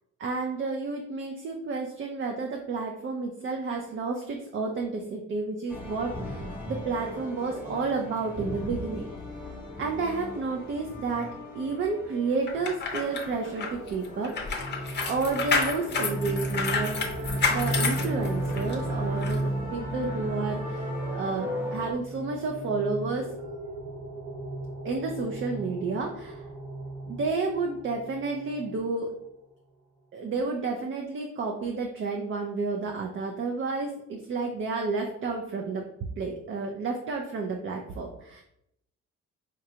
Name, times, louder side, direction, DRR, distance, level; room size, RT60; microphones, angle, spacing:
voice 1, 0.2-9.1 9.8-14.7 15.0-17.0 17.4-20.9 21.2-23.6 24.8-26.4 27.1-29.2 30.1-35.9 36.2-38.4, right 4 dB, 45° right, 2 dB, 0.4 m, -31 dB
sound 1, 5.7-21.9, left 1 dB, 5° right, 0.8 m, -39 dB
sound 2, 12.5-18.7 19.2-19.4, left 4 dB, 40° left, 0.6 m, -30 dB
sound 3, 14.1-28.8, right 2 dB, 90° right, 1.3 m, -35 dB
4.9 x 2.2 x 2.8 m, 0.78 s
cardioid pair, 150°, 29 cm